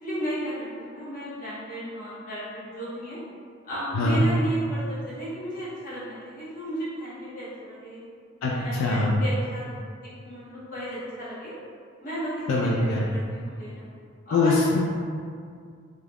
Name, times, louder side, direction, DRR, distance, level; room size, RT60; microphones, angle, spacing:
voice 1, 0.0-3.2 3.6-8.0 8.5-11.5 12.0-13.9 14.3-14.6, equal, 40° left, -10 dB, 0.9 m, -34 dB
voice 2, 8.4-9.1 12.5-13.0 14.3-14.8, left 2 dB, 85° left, -3 dB, 0.3 m, -23 dB
2.3 x 2.1 x 3.3 m, 2.2 s
head